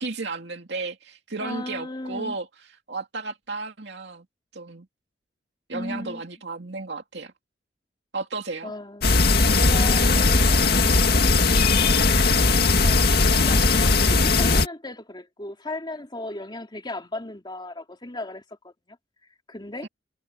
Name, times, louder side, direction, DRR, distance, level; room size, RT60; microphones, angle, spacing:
voice 1, 0.0-2.5 2.9-4.2 4.5-4.9 5.7-7.3 8.1-8.7 19.8-19.9, right 3 dB, 70° right, 2.6 m, -33 dB
voice 2, 1.4-2.4 5.7-6.2 8.6-9.1 9.7-11.6 12.8-18.7 19.5-19.9, left 1 dB, 25° left, 2.9 m, -36 dB
sound 1, 9.0-14.7, left 3 dB, 60° left, 2.2 m, -19 dB
head